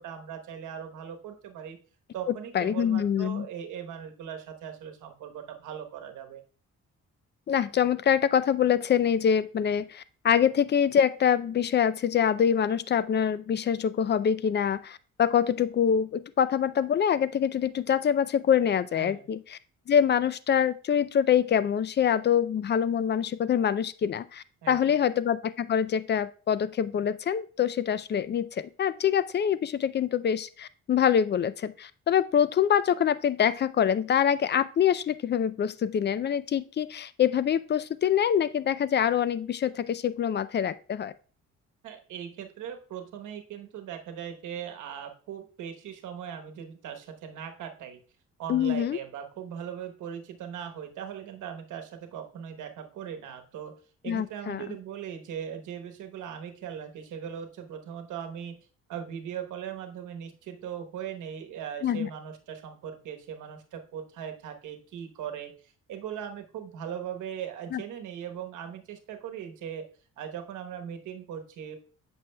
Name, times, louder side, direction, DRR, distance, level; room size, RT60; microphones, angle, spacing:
voice 1, 0.0-1.8 2.1-6.4 19.0-19.3 24.6-25.0 41.8-48.0 48.4-53.7 54.0-58.6 58.9-69.8 70.2-71.8, right 8 dB, 80° right, 5 dB, 1.1 m, -39 dB
voice 2, 2.5-3.5 7.5-19.6 19.9-41.1 48.5-49.0 54.1-54.6 61.8-62.1 67.7-67.8, left 8 dB, 35° left, 16 dB, 0.4 m, -25 dB
8.4 x 6.2 x 2.2 m, 0.39 s
cardioid pair, 90°, 30 cm